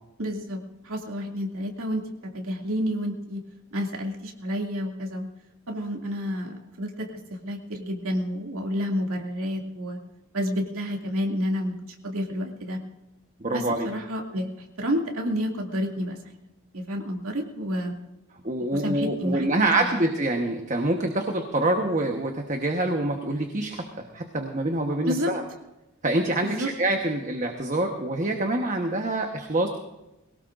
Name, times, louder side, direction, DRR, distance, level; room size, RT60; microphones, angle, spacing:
voice 1, 0.2-2.0 2.3-3.4 3.7-5.3 5.7-7.1 7.4-10.0 10.3-11.8 12.0-12.8 13.5-16.4 16.7-17.9 18.7-20.0 25.0-25.3 26.4-26.7, equal, 75° right, 1 dB, 2.5 m, -30 dB
voice 2, 13.4-13.9 18.4-25.4 26.0-29.7, right 2 dB, 35° right, 3 dB, 1.2 m, -26 dB
21.5 x 18.0 x 2.6 m, 0.96 s
head